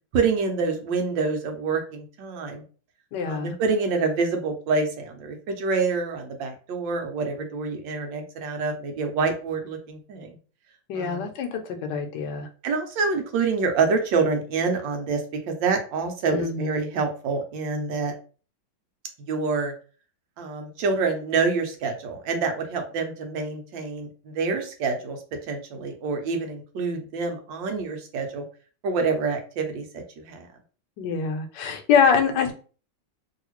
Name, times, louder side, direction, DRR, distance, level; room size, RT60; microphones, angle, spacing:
voice 1, 0.1-2.6 3.3-10.4 10.9-11.2 12.6-15.2 15.5-18.1 19.3-19.7 20.4-25.2 25.5-28.4 28.8-30.5, right 4 dB, 80° right, 4 dB, 1.5 m, -27 dB
voice 2, 3.1-3.5 10.9-11.6 11.9-12.5 16.3-16.8 31.0-32.5, left 6 dB, 75° left, 5 dB, 1.3 m, -24 dB
3.2 x 2.7 x 2.9 m, 0.38 s
omnidirectional pair, 2.0 m